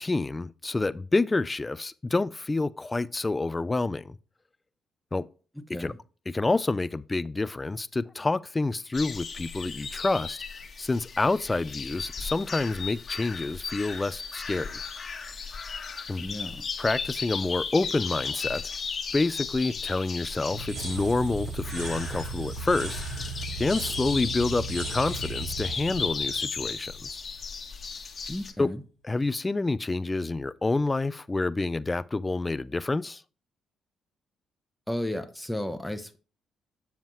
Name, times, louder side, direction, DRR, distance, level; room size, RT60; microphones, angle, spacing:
voice 1, 0.0-4.1 5.1-5.3 5.8-5.9 6.3-10.4 10.8-14.8 16.1-16.2 16.8-18.6 19.1-23.0 23.6-27.2 28.6-28.7 29.0-33.2, left 3 dB, 20° left, 0.4 m, -28 dB
voice 2, 5.5-6.0 16.2-16.7 28.3-28.8 34.9-36.2, left 1 dB, 5° left, 0.9 m, -34 dB
sound 1, 8.9-28.5, left 5 dB, 40° left, 1.2 m, -36 dB
sound 2, 20.5-27.3, right 3 dB, 85° right, 1.7 m, -36 dB
7.4 x 7.1 x 3.1 m
cardioid pair, 90°, 0 cm